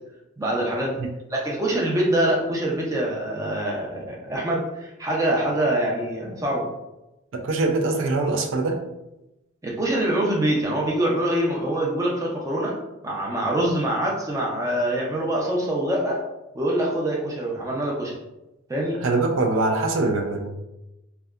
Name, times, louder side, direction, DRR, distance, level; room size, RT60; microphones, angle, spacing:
voice 1, 0.4-1.0 1.3-6.7 9.6-12.7 13.0-16.2 16.5-18.1 18.7-19.0, right 1 dB, 15° right, -3 dB, 0.5 m, -24 dB
voice 2, 7.3-8.8 19.0-20.5, right 3 dB, 70° right, 2 dB, 0.4 m, -23 dB
2.6 x 2.2 x 2.3 m, 0.95 s
head